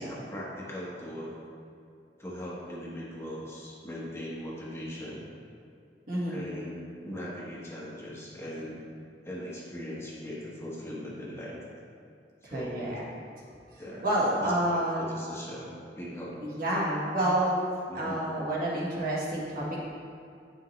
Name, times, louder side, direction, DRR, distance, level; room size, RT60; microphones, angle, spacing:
voice 1, 0.0-1.4 2.2-5.2 6.3-8.8 9.2-11.8 12.4-13.0 13.8-14.1 14.4-14.5 15.0-16.4 17.9-18.2, equal, 15° left, -6 dB, 1.2 m, -40 dB
voice 2, 6.1-6.4 12.4-13.0 13.7-15.0 16.4-17.6 17.9-19.8, right 1 dB, 55° right, -6 dB, 1.7 m, -29 dB
8.7 x 6.0 x 3.2 m, 2.4 s
head